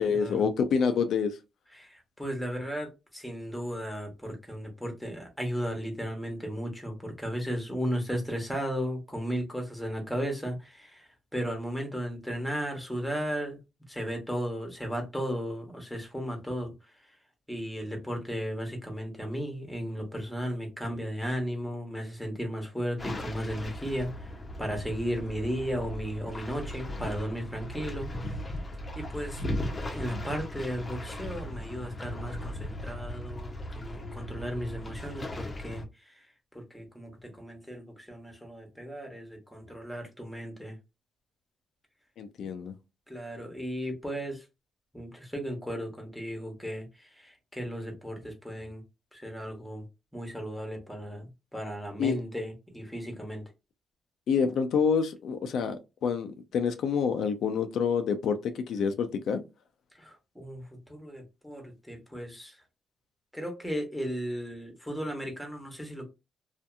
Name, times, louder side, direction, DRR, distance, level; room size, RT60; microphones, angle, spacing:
voice 1, 0.0-1.4 42.2-42.7 52.0-52.2 54.3-59.4, left 6 dB, 75° left, 0.4 m, -27 dB
voice 2, 1.7-13.6 13.9-16.9 17.5-28.1 28.9-29.4 29.8-36.3 36.5-40.8 43.1-44.4 44.9-48.8 49.1-49.9 50.1-53.4 59.9-62.6 63.3-66.1, equal, ahead, 1.0 m, -35 dB
sound 1, 23.0-35.9, left 1 dB, 25° left, 0.6 m, -37 dB
2.7 x 2.4 x 2.2 m
cardioid pair, 105°, 0 cm